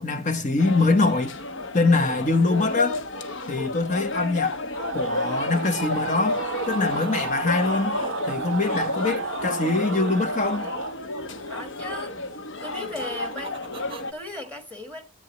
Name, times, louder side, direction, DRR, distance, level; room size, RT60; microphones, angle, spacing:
voice 1, 0.0-1.3 1.7-3.0 3.5-4.6 4.9-8.0 8.3-10.7, left 3 dB, 35° left, 0.7 m, -23 dB
sound 1, 0.6-14.1, left 2 dB, 60° left, 1.0 m, -31 dB
sound 2, 4.8-11.0, right 6 dB, 60° right, 0.5 m, -33 dB
sound 3, 6.3-7.3 7.5-10.1 12.7-14.5, right 4 dB, 25° right, 0.7 m, -44 dB
voice 2, 11.5-12.2 12.6-13.8 14.1-15.1, left 1 dB, 5° left, 1.4 m, -37 dB
14.0 x 8.3 x 3.0 m
head